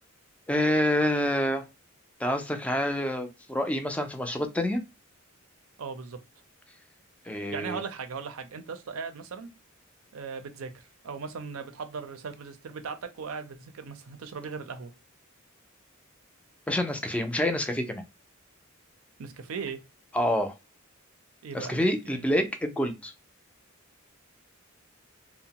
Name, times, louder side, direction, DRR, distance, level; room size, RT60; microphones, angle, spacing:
voice 1, 0.5-1.7 2.2-4.8 7.3-7.8 16.7-18.0 20.1-20.5 21.5-23.1, left 1 dB, 5° left, 0.3 m, -27 dB
voice 2, 5.8-6.2 7.3-9.5 10.1-14.9 19.2-19.8 21.4-22.2, right 5 dB, 75° right, 0.5 m, -38 dB
2.7 x 2.0 x 2.8 m
head